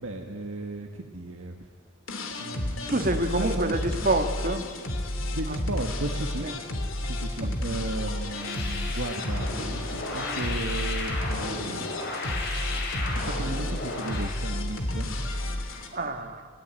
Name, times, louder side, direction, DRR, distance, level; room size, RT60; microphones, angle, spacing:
voice 1, 0.0-1.6 2.4-3.7 5.3-6.5 7.0-11.9 13.1-15.1, right 2 dB, 75° right, 3 dB, 1.6 m, -35 dB
sound 1, 2.1-15.9, left 1 dB, 75° left, 2.8 m, -31 dB
voice 2, 2.8-4.7 5.5-5.6 6.4-6.5 7.4-7.5 15.9-16.5, right 2 dB, 45° right, 6 dB, 1.9 m, -27 dB
sound 2, 8.3-14.4, left 2 dB, 55° left, 4.8 m, -34 dB
29.5 x 15.5 x 9.1 m, 2.1 s
head